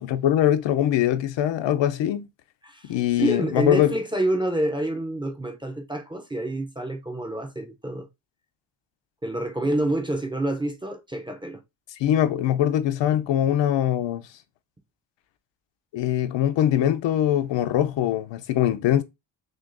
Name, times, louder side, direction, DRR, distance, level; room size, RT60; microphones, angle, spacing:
voice 1, 0.0-2.3 2.9-3.9 12.0-14.2 15.9-19.0, left 11 dB, 70° left, 0.6 m, -22 dB
voice 2, 2.6-8.1 9.2-11.6, right 1 dB, 10° right, 0.4 m, -28 dB
6.3 x 2.3 x 2.5 m
cardioid pair, 150°, 46 cm